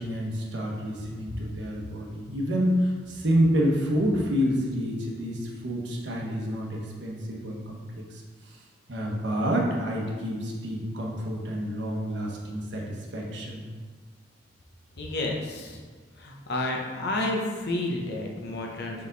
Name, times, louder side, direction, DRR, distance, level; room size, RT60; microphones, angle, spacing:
voice 1, 0.0-8.6 8.9-13.6, equal, 70° right, -1 dB, 1.1 m, -28 dB
voice 2, 15.0-15.8 16.2-19.1, left 2 dB, 55° left, 0 dB, 0.9 m, -30 dB
5.1 x 4.8 x 4.0 m, 1.5 s
head